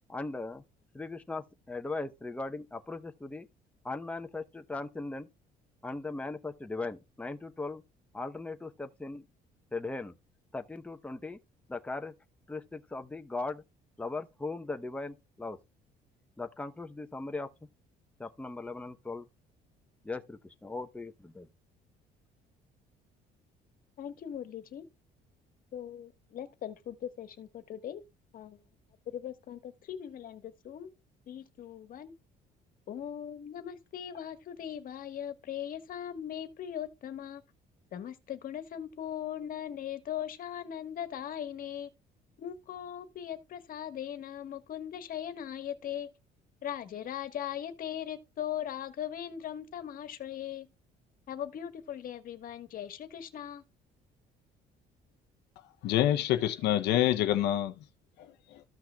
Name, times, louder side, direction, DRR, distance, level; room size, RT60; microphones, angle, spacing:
voice 1, 0.1-0.6 0.9-3.5 3.8-5.3 5.8-7.8 8.1-9.2 9.7-10.1 10.5-11.4 11.7-12.1 12.5-13.6 14.0-15.6 16.4-17.5 18.2-19.3 20.0-21.5, left 3 dB, 10° left, 0.8 m, -38 dB
voice 2, 24.0-24.9 25.7-28.0 28.3-28.6 29.1-30.9 31.3-32.1 32.9-37.4 37.9-41.9 42.4-46.1 46.6-50.7 51.3-53.6, left 10 dB, 55° left, 1.4 m, -39 dB
voice 3, 55.8-57.8 58.2-58.6, left 12 dB, 80° left, 0.7 m, -27 dB
14.5 x 5.8 x 2.3 m
cardioid pair, 110°, 17 cm